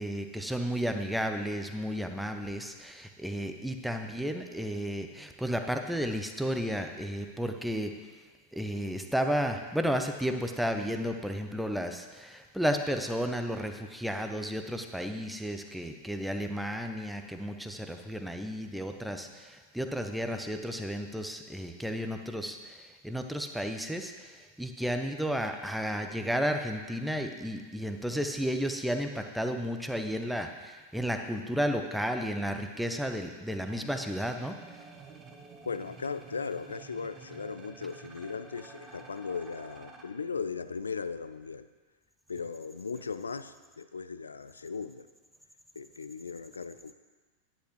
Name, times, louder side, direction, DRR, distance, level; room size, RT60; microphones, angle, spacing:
voice 1, 0.0-7.9 8.5-34.5, equal, ahead, 5 dB, 0.8 m, -33 dB
sound 1, 33.7-40.0, right 4 dB, 25° right, 1.1 m, -50 dB
voice 2, 35.7-41.7 42.3-45.1 45.8-46.9, left 5 dB, 75° left, 13 dB, 0.4 m, -37 dB
10.0 x 10.0 x 3.3 m, 1.4 s
figure-of-eight pair, 90°, 0 cm